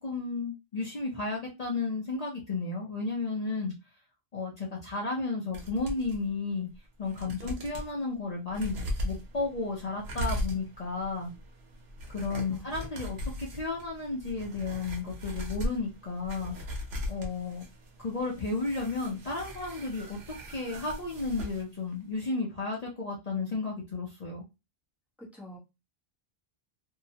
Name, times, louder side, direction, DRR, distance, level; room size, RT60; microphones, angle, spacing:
voice 1, 0.0-3.7 4.3-6.7 7.0-11.3 12.1-16.6 17.1-17.7 18.0-20.2 20.5-24.4, left 3 dB, 45° left, -3 dB, 0.7 m, -33 dB
sound 1, 5.5-6.2 6.7-6.8 7.1-7.9 8.5-21.6 21.9-22.0, equal, 85° right, 1.0 m, -39 dB
voice 2, 25.2-25.6, equal, ahead, -4 dB, 0.8 m, -47 dB
2.7 x 2.1 x 2.7 m, 0.25 s
omnidirectional pair, 1.0 m